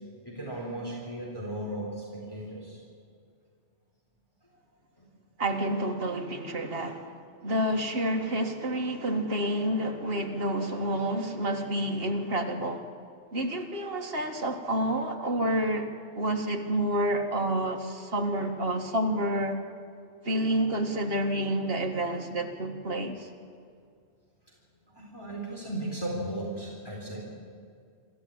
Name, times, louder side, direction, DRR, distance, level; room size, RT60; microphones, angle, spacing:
voice 1, 0.2-2.8 5.0-5.1 24.9-27.3, right 1 dB, 20° left, -3 dB, 3.6 m, -36 dB
voice 2, 5.4-7.1 7.4-12.8 13.3-19.6 20.2-23.3, right 1 dB, 50° right, 2 dB, 2.1 m, -29 dB
27.0 x 13.5 x 8.8 m, 2.2 s
omnidirectional pair, 1.2 m